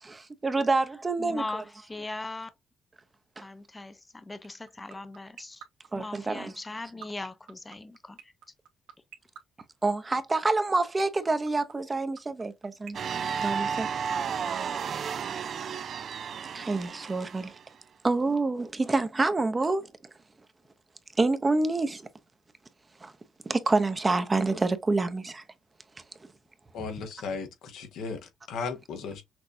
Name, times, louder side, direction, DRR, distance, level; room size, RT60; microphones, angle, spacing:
voice 1, 0.0-1.4 3.4-3.5 5.9-6.5 9.8-13.0 13.4-13.9 16.5-17.5 18.0-19.9 21.2-22.0 23.0-23.1 23.5-25.4, right 3 dB, 25° right, 0.7 m, -27 dB
voice 2, 1.2-2.5 3.4-5.6 5.9-8.3, left 2 dB, 20° left, 0.6 m, -39 dB
sound 1, 4.4-14.1, right 9 dB, 90° right, 0.8 m, -45 dB
sound 2, 12.9-17.6, right 7 dB, 55° right, 0.4 m, -33 dB
voice 3, 26.7-29.2, left 5 dB, 80° left, 1.2 m, -36 dB
6.0 x 2.5 x 2.6 m
cardioid pair, 90°, 0 cm